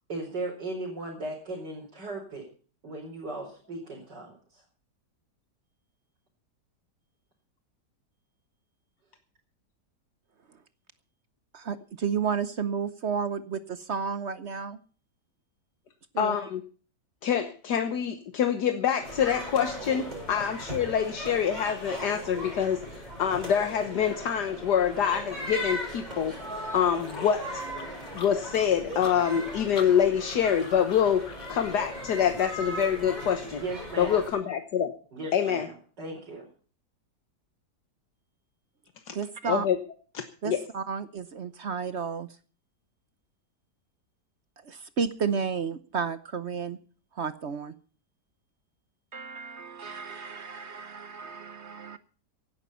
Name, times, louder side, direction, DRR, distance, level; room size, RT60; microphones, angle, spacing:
voice 1, 0.1-2.5 2.8-4.6 33.5-34.2 35.1-36.4, right 2 dB, 85° right, 5.1 m, -37 dB
voice 2, 11.5-14.8 16.1-16.4 39.1-39.7 40.4-42.3 44.6-46.8 47.1-47.7 49.1-52.0, right 6 dB, 50° right, 0.9 m, -32 dB
voice 3, 16.2-16.6 17.2-26.4 26.7-27.6 28.1-31.2 31.5-33.6 34.0-34.9 35.3-35.7 39.1-39.2 39.5-39.8 40.1-40.6, left 8 dB, 75° left, 1.7 m, -26 dB
sound 1, 19.0-34.3, equal, 25° right, 7.6 m, -38 dB
sound 2, 27.1-31.6, left 5 dB, 60° left, 2.0 m, -42 dB
16.5 x 11.5 x 5.6 m
omnidirectional pair, 1.8 m